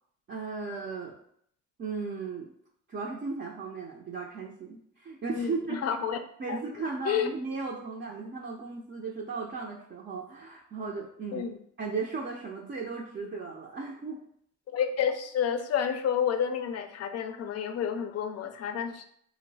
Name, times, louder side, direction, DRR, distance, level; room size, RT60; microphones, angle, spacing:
voice 1, 0.3-1.2 1.8-2.5 2.9-5.8 6.4-11.5 11.8-14.2, right 4 dB, 35° right, -2 dB, 0.5 m, -36 dB
voice 2, 5.4-6.2 6.5-6.6 7.1-7.3 11.3-11.6 14.7-19.0, left 8 dB, 55° left, 9 dB, 0.4 m, -30 dB
2.9 x 2.1 x 3.9 m, 0.67 s
cardioid pair, 90°, 30 cm